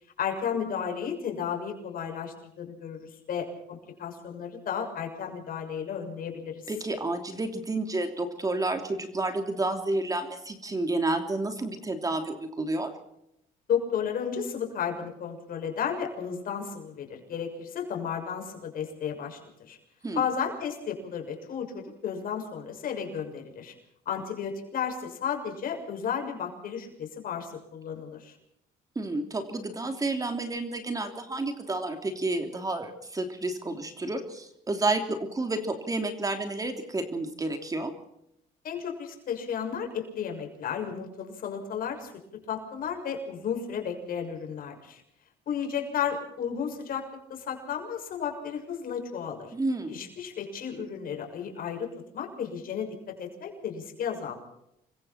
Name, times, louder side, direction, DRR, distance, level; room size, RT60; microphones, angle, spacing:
voice 1, 0.2-6.6 13.7-19.8 20.1-23.7 24.0-28.4 38.6-45.0 45.5-47.0 47.3-49.5 49.9-54.4, left 7 dB, 60° left, 3 dB, 6.5 m, -33 dB
voice 2, 6.7-12.9 20.0-20.2 28.9-37.9 49.5-50.0, right 2 dB, 20° right, 6 dB, 3.2 m, -30 dB
28.0 x 23.5 x 4.4 m, 0.79 s
cardioid pair, 110°, 17 cm